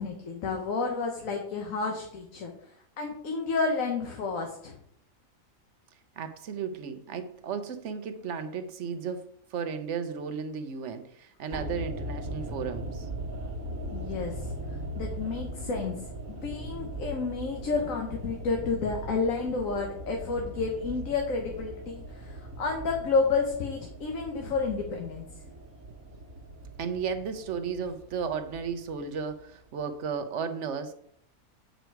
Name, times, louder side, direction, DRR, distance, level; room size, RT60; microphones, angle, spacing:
voice 1, 0.0-2.5 3.0-4.7 13.9-14.5 15.0-25.2, left 4 dB, 70° left, 1.4 m, -30 dB
voice 2, 6.2-13.1 26.8-30.9, right 6 dB, 60° right, 1.0 m, -34 dB
sound 1, 11.5-29.7 30.0-30.1, right 1 dB, 75° right, 1.6 m, -40 dB
8.1 x 5.1 x 4.6 m
omnidirectional pair, 1.5 m